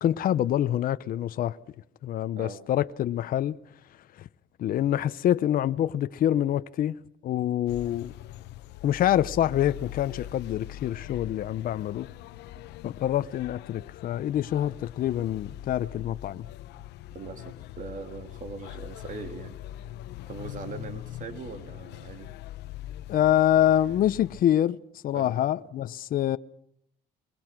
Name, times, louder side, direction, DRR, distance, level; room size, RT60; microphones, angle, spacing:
voice 1, 0.0-1.6 2.0-3.6 4.6-7.0 7.2-8.1 8.8-12.1 12.8-16.5 23.1-24.8 25.0-26.4, left 11 dB, 55° left, 0.8 m, -26 dB
sound 1, 7.7-24.4, left 13 dB, 80° left, 0.9 m, -42 dB
voice 2, 17.1-19.6 20.3-22.3 25.1-25.4, right 4 dB, 50° right, 2.8 m, -40 dB
23.5 x 22.0 x 6.1 m
cardioid pair, 110°, 17 cm